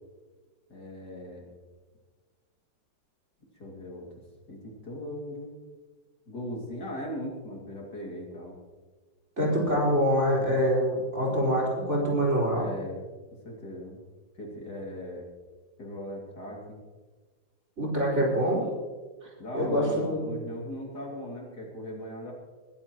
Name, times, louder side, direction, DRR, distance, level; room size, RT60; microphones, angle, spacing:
voice 1, 0.7-1.5 3.5-4.1 4.5-5.6 6.3-8.6 12.5-13.0 13.4-14.0 14.3-15.3 15.8-16.8 19.4-22.3, left 1 dB, 55° left, -1 dB, 3.2 m, -38 dB
voice 2, 9.4-12.7 17.8-18.7 19.5-20.3, equal, 35° right, -3 dB, 4.9 m, -25 dB
21.0 x 15.0 x 3.1 m, 1.4 s
omnidirectional pair, 2.1 m